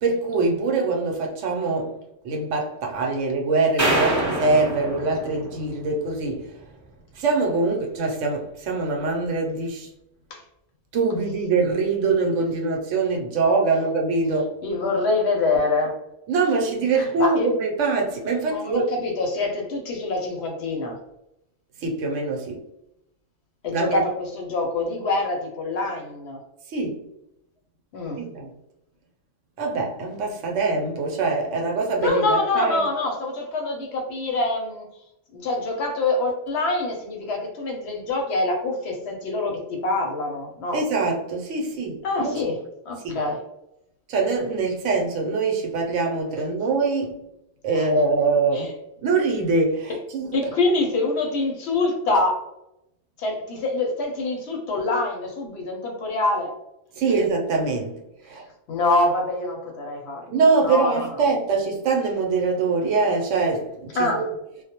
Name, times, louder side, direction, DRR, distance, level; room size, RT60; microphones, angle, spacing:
voice 1, 0.0-2.0 2.2-6.5 7.2-9.9 10.9-14.6 16.3-18.9 21.8-22.6 23.7-24.0 26.7-27.0 28.2-28.5 29.6-32.8 40.7-42.4 43.0-43.2 44.1-47.2 47.6-48.7 49.0-50.5 57.0-58.5 60.3-64.3, right 3 dB, 75° right, 0.9 m, -23 dB
sound 1, 3.8-6.1, right 1 dB, 15° right, 0.9 m, -26 dB
voice 2, 14.6-15.9 16.9-17.5 18.4-21.0 23.6-26.4 27.9-28.2 32.0-34.9 35.3-40.8 42.0-42.6 42.9-43.4 47.7-47.9 48.5-48.7 50.3-52.4 53.2-56.5 58.7-60.4 60.6-61.1 63.9-64.2, left 2 dB, 65° left, 0.8 m, -25 dB
2.2 x 2.0 x 2.7 m
omnidirectional pair, 1.3 m